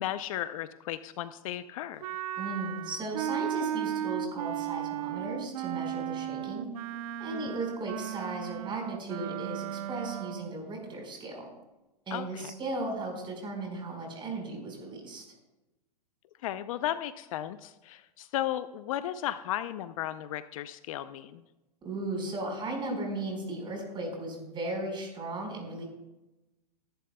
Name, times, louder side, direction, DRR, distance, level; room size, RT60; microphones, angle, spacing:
voice 1, 0.0-2.0 7.3-7.6 12.1-12.5 16.4-21.4, left 12 dB, 55° left, 13 dB, 0.6 m, -35 dB
Wind instrument woodwind instrument, 2.0-10.6, right 11 dB, 60° right, 0.8 m, -35 dB
voice 2, 2.4-6.7 7.2-11.5 12.1-15.2 21.8-25.9, right 2 dB, 25° right, 1 dB, 4.7 m, -36 dB
21.5 x 11.5 x 2.2 m, 1.0 s
hypercardioid pair, 120°, 21 cm